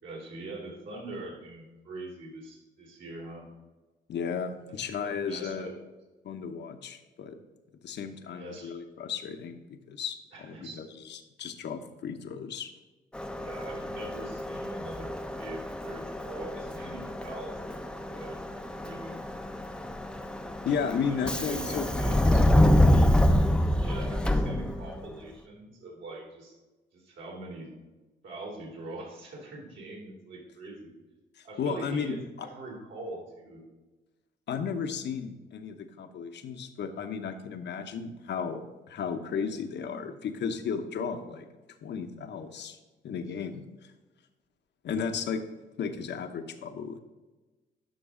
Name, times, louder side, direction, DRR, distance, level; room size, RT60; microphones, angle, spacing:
voice 1, 0.0-3.5 5.0-5.8 8.2-8.8 10.3-10.8 13.3-17.7 18.1-19.1 21.1-22.4 23.8-26.6 26.9-27.7 28.2-30.9 31.4-33.6, right 2 dB, 70° right, -2 dB, 3.2 m, -43 dB
voice 2, 4.1-5.7 6.2-7.4 7.8-9.6 9.9-12.7 20.6-22.0 22.3-22.7 31.4-32.5 34.5-38.6 38.9-41.5 41.8-42.8 43.0-43.6 44.8-45.4 45.8-47.0, left 6 dB, 60° left, 7 dB, 0.9 m, -34 dB
Subway metro underground, 13.1-25.1, left 1 dB, 5° left, 0.6 m, -27 dB
11.5 x 6.0 x 3.7 m, 1.2 s
cardioid pair, 90°, 20 cm